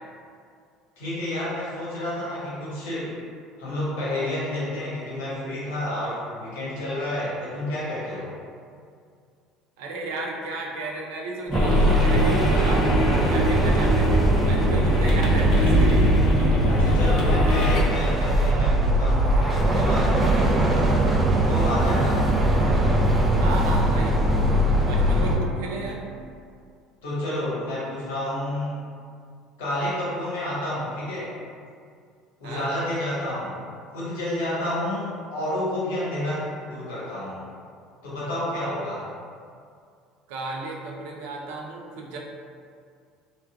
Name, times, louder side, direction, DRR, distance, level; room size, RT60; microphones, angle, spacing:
voice 1, 1.0-3.1 3.6-8.3 16.7-20.9 21.3-22.2 27.0-28.8 29.6-31.3 32.4-33.6 33.9-37.4 38.0-39.1, left 1 dB, 90° left, -9 dB, 1.1 m, -30 dB
voice 2, 9.8-12.9 13.3-16.1 23.4-24.4 24.8-26.0 32.4-32.7 40.3-42.2, right 2 dB, 80° right, -1 dB, 0.4 m, -33 dB
sound 1, 11.5-17.8, equal, 60° left, 0.6 m, -24 dB
sound 2, 11.5-25.4, right 1 dB, 15° right, 0.5 m, -21 dB
Organ, 15.5-26.7, right 2 dB, 10° left, 1.2 m, -40 dB
3.1 x 2.3 x 2.3 m, 2.2 s
supercardioid pair, 80°, 0 cm